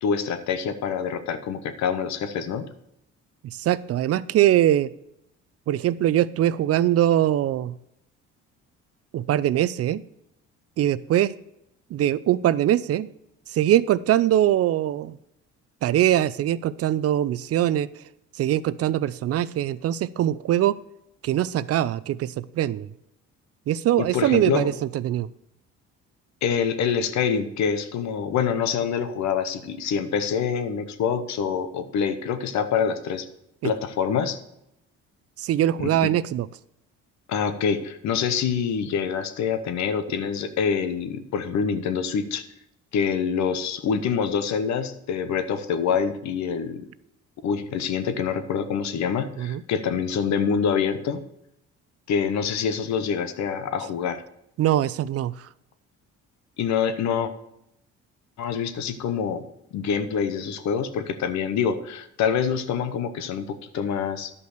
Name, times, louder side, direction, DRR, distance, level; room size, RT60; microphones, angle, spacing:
voice 1, 0.0-2.7 24.0-24.7 26.4-33.3 33.6-34.4 35.8-36.1 37.3-42.4 42.9-46.9 47.4-51.2 52.1-54.2 56.6-57.3 58.4-59.4 59.7-64.3, left 7 dB, 70° left, 11 dB, 1.0 m, -26 dB
voice 2, 3.4-4.9 5.7-7.7 9.1-10.0 10.8-11.3 11.9-13.1 13.5-15.2 15.8-17.9 18.4-20.8 21.2-22.9 23.7-25.3 35.4-36.5 49.4-49.6 54.6-55.3, right 12 dB, 55° right, 18 dB, 0.5 m, -22 dB
11.0 x 5.4 x 6.5 m, 0.80 s
cardioid pair, 95°, 29 cm